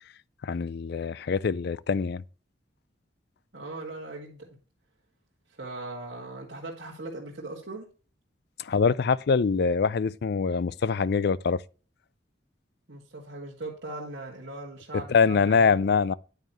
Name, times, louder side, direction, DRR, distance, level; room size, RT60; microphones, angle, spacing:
voice 1, 0.4-2.2 8.6-11.6 15.1-16.1, left 5 dB, 55° left, 0.4 m, -24 dB
voice 2, 3.5-4.5 5.6-7.9 12.9-15.8, right 2 dB, 60° right, 1.9 m, -39 dB
9.8 x 9.1 x 3.1 m
head